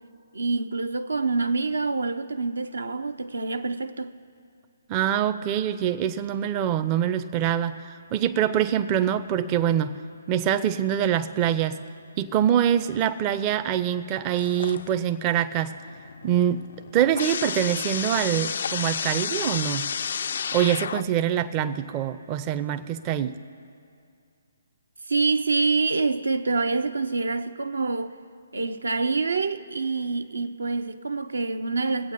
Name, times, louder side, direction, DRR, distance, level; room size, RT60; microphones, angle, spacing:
voice 1, 0.3-4.2 25.1-28.2 28.5-32.1, right 3 dB, 75° right, 0.6 m, -26 dB
voice 2, 4.9-10.0 10.3-11.8 12.2-15.7 16.2-16.6 16.9-19.9 20.5-23.4, right 10 dB, 25° right, 0.5 m, -24 dB
sound 1, 14.4-15.2 15.5-21.3, left 7 dB, 55° left, 0.3 m, -31 dB
22.5 x 8.3 x 4.1 m
figure-of-eight pair, 135°, 0 cm